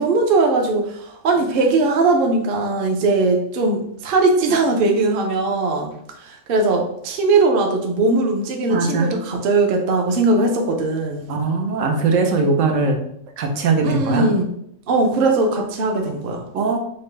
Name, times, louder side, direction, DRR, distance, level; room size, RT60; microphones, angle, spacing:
voice 1, 0.0-11.3 13.8-14.6 14.9-16.4, right 3 dB, 55° right, 1 dB, 0.7 m, -19 dB
voice 2, 8.7-9.1 11.3-13.0 13.4-14.3 16.5-16.8, right 3 dB, 85° right, 2 dB, 1.1 m, -20 dB
5.6 x 2.1 x 3.2 m, 0.71 s
omnidirectional pair, 1.3 m